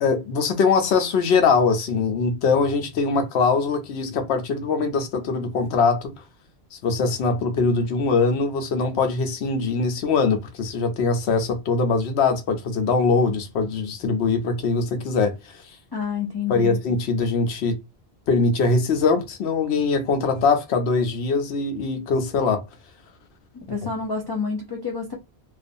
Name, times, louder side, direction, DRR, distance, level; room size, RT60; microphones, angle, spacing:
voice 1, 0.0-6.1 6.7-15.6 16.5-17.7 18.3-22.6, left 4 dB, 85° left, 0.9 m, -22 dB
voice 2, 15.9-16.7 23.7-25.2, left 5 dB, 35° left, 0.4 m, -28 dB
2.4 x 2.3 x 2.5 m
omnidirectional pair, 1.1 m